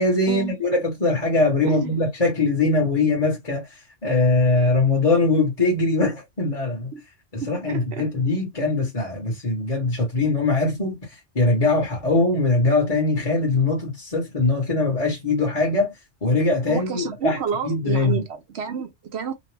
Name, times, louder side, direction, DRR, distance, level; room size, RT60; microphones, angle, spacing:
voice 1, 0.0-6.9 7.3-15.9 16.2-17.4 17.6-18.2, left 3 dB, 35° left, 1.1 m, -22 dB
voice 2, 1.6-1.9 6.9-7.0 7.4-8.1 16.7-19.3, right 7 dB, 65° right, 0.9 m, -30 dB
2.9 x 2.0 x 3.2 m
omnidirectional pair, 1.2 m